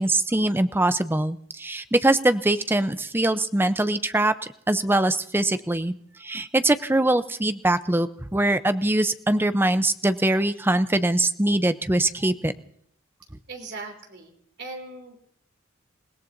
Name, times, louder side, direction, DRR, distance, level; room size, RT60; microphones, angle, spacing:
voice 1, 0.0-4.3 4.7-12.5, right 1 dB, 10° right, 11 dB, 0.6 m, -22 dB
voice 2, 13.5-14.3 14.6-15.2, right 3 dB, 55° right, 3 dB, 3.2 m, -38 dB
28.5 x 17.5 x 2.6 m, 0.70 s
head